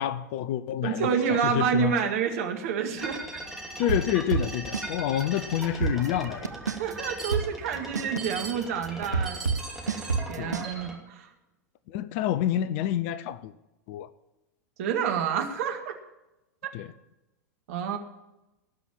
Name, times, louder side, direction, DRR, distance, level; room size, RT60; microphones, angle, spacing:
voice 1, 0.0-2.0 3.8-6.5 10.4-10.7 11.9-13.5 13.9-14.1 16.7-16.9, left 11 dB, 45° left, 0.7 m, -28 dB
voice 2, 0.8-3.4 6.7-9.4 9.8-11.3 14.8-15.9 17.7-18.0, right 7 dB, 55° right, 2.1 m, -29 dB
sound 1, 3.0-11.0, right 2 dB, 5° right, 2.8 m, -39 dB
sound 2, 3.9-4.9 5.2-5.3 5.6-6.9 7.3-10.7, right 5 dB, 80° right, 0.7 m, -28 dB
18.5 x 6.2 x 7.3 m
figure-of-eight pair, 90°, 9 cm